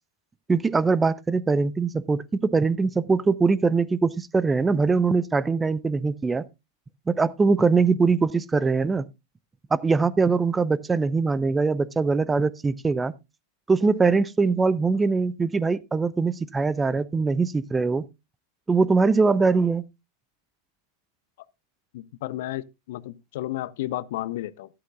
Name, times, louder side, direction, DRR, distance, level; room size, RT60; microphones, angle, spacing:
voice 1, 0.5-6.4 7.1-9.1 9.7-13.1 13.7-18.0 18.7-19.8, right 4 dB, 15° right, 0.5 m, -22 dB
voice 2, 21.9-24.7, left 15 dB, 55° left, 0.5 m, -32 dB
12.5 x 11.0 x 2.3 m
figure-of-eight pair, 90°, 0 cm